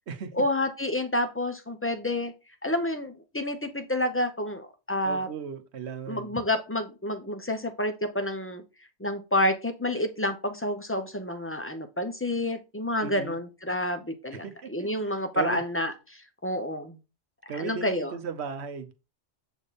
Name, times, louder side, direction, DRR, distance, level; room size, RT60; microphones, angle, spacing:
voice 1, 0.4-2.3 2.6-5.3 6.1-8.6 9.0-17.0 17.5-18.1, left 1 dB, 15° left, 0.7 m, -29 dB
voice 2, 5.0-6.3 13.0-13.4 14.3-14.9 15.3-15.6 17.5-18.9, right 6 dB, 75° right, 1.1 m, -36 dB
7.8 x 3.5 x 4.1 m
omnidirectional pair, 1.1 m